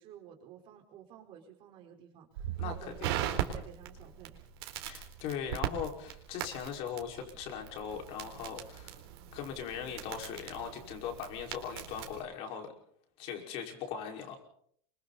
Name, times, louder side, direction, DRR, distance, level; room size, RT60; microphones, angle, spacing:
voice 1, 0.0-4.4, right 9 dB, 40° right, 3 dB, 4.6 m, -52 dB
Crackle, 2.4-12.2, right 11 dB, 70° right, 4.0 m, -40 dB
voice 2, 2.6-3.2 4.9-9.0 9.3-12.7 13.2-14.4, left 7 dB, 45° left, 3 dB, 5.2 m, -39 dB
28.5 x 24.5 x 4.2 m, 0.64 s
supercardioid pair, 155°, 13 cm